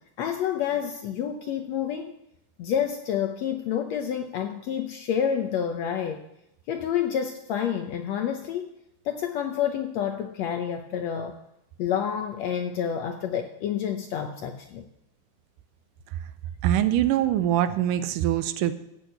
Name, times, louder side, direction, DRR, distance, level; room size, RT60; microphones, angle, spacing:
voice 1, 0.2-2.1 2.6-6.2 6.7-8.7 9.0-11.4 11.8-14.9, left 8 dB, 75° left, 5 dB, 1.7 m, -28 dB
voice 2, 16.6-18.7, right 12 dB, 80° right, 12 dB, 2.2 m, -23 dB
15.0 x 6.5 x 8.0 m, 0.83 s
omnidirectional pair, 3.8 m